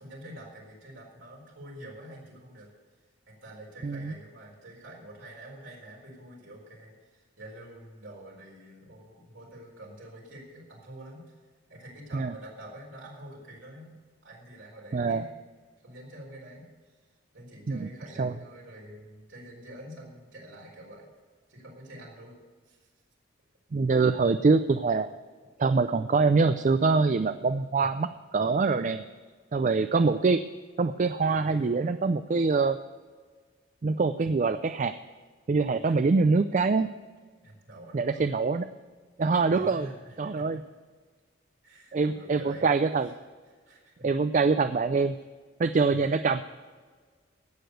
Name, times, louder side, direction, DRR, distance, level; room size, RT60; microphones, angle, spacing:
voice 1, 0.0-2.7 3.3-11.4 11.7-14.0 14.2-15.3 15.8-17.0 17.3-21.1 21.5-22.4 22.6-22.9 23.9-24.0 31.3-31.8 35.7-36.0 37.4-38.3 39.5-40.6 41.6-42.8 43.5-44.1, right 1 dB, 90° right, -3 dB, 4.3 m, -47 dB
voice 2, 3.8-4.1 12.1-12.3 14.9-15.2 17.7-17.9 18.2-18.3 23.7-25.1 25.6-29.0 29.5-30.4 30.8-32.8 33.8-34.9 35.5-36.9 37.9-38.7 39.2-39.9 40.2-40.6 41.9-43.1 44.0-45.2 45.6-46.4, right 4 dB, 40° right, 11 dB, 0.3 m, -24 dB
17.0 x 6.8 x 6.5 m, 1.5 s
head